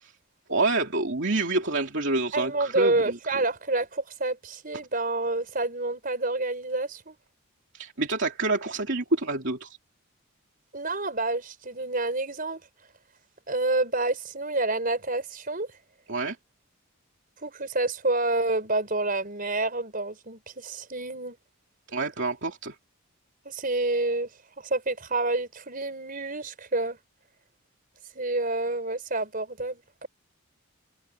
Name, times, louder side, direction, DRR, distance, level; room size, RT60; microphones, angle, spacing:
voice 1, 0.5-3.2 7.7-9.8 16.1-16.4 21.9-22.7 26.1-26.2, right 2 dB, 55° right, 3.1 m, -27 dB
voice 2, 2.3-7.2 10.7-12.6 13.5-15.7 17.4-21.4 23.5-24.3 24.6-27.0 28.1-30.1, right 2 dB, 40° right, 5.2 m, -28 dB
head